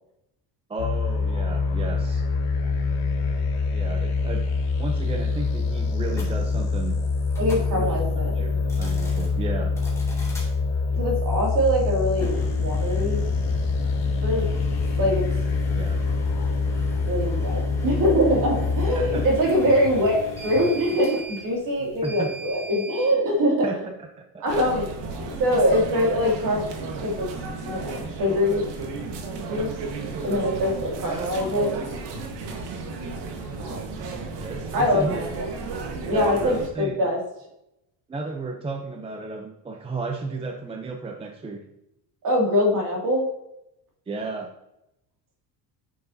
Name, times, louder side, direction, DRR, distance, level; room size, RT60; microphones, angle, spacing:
voice 1, 0.7-2.2 3.7-4.5 4.8-7.0 7.7-8.0 8.4-9.8 15.7-16.0 18.9-19.2 22.0-22.4 23.6-23.9 24.2-24.4 31.0-31.3 34.4-35.3 36.1-37.1 38.1-41.6 44.1-44.5, right 3 dB, 15° right, 3 dB, 0.6 m, -33 dB
sound 1, 0.8-19.4, left 4 dB, 90° left, 1.9 m, -25 dB
sound 2, 6.1-6.3 7.3-7.7 8.6-9.3 9.8-10.5 12.1-23.1, left 1 dB, 5° left, 2.3 m, -37 dB
voice 2, 7.4-8.3 10.9-13.2 14.2-14.5 15.0-15.2 17.1-23.8 24.4-24.9 25.4-26.6 27.0-27.3 27.6-28.7 29.5-29.7 30.2-31.7 33.6-34.0 34.7-35.5 36.1-37.2 42.2-43.3, equal, 50° right, -1 dB, 2.5 m, -23 dB
sound 3, 24.5-36.7, right 4 dB, 80° right, 1.6 m, -33 dB
9.6 x 6.5 x 2.8 m, 0.85 s
cardioid pair, 145°, 41 cm